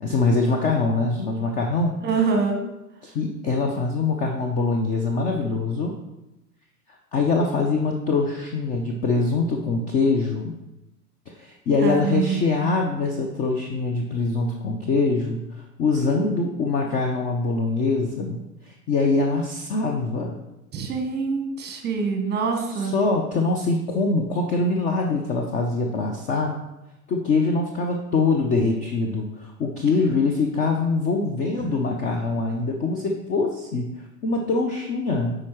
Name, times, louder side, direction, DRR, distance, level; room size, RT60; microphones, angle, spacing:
voice 1, 0.0-2.0 3.0-6.0 7.1-10.5 11.3-18.4 18.7-20.4 22.7-26.5 27.1-33.9 34.2-35.4, left 3 dB, 20° left, 2 dB, 0.4 m, -23 dB
voice 2, 2.0-2.6 11.8-12.7 20.7-23.0 31.6-31.8, right 5 dB, 20° right, 4 dB, 1.1 m, -25 dB
8.3 x 4.9 x 3.0 m, 0.93 s
figure-of-eight pair, 90°, 46 cm